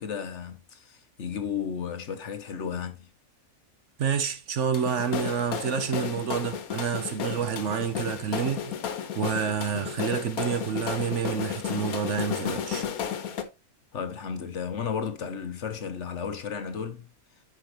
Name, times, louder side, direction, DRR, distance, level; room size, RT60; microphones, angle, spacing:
voice 1, 0.0-3.1 13.9-17.1, left 7 dB, 60° left, 1.2 m, -33 dB
voice 2, 4.0-8.7 9.1-12.9, right 7 dB, 60° right, 1.1 m, -28 dB
sound 1, 4.7-13.4, left 8 dB, 80° left, 1.4 m, -33 dB
10.5 x 5.0 x 3.0 m
omnidirectional pair, 1.5 m